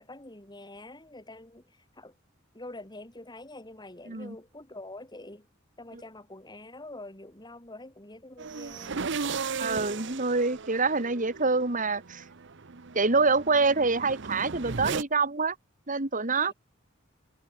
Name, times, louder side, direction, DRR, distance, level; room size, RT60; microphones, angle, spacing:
voice 1, 0.0-2.2 2.5-5.5 5.8-9.0 16.5-16.6, left 2 dB, 20° left, 5.7 m, -46 dB
sound 1, 8.4-15.0, right 5 dB, 65° right, 0.9 m, -36 dB
voice 2, 9.6-12.2 12.9-15.6 15.9-16.5, right 4 dB, 45° right, 2.3 m, -26 dB
head